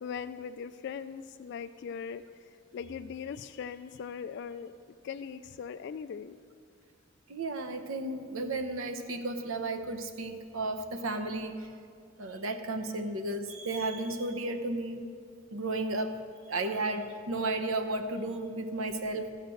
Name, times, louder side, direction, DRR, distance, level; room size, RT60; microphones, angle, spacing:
voice 1, 0.0-2.2 2.7-4.7 5.0-6.4, left 7 dB, 55° left, 11 dB, 0.3 m, -39 dB
voice 2, 7.3-11.7 12.2-15.1 15.5-16.1 16.5-19.3, right 2 dB, 80° right, 7 dB, 0.9 m, -33 dB
14.0 x 6.6 x 7.6 m, 2.3 s
head